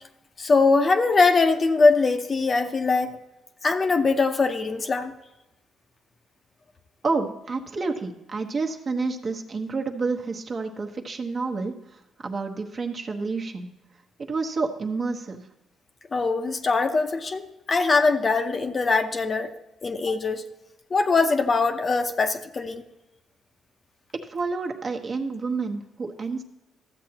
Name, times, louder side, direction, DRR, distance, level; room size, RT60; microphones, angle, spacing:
voice 1, 0.4-3.1 3.6-5.1 16.1-19.5 19.8-20.4 20.9-22.8, left 4 dB, 35° left, 6 dB, 0.8 m, -22 dB
voice 2, 7.0-11.7 12.2-13.7 14.3-15.4 24.3-26.4, right 4 dB, 40° right, 3 dB, 1.1 m, -29 dB
13.5 x 7.6 x 2.9 m, 0.97 s
cardioid pair, 90°, 0 cm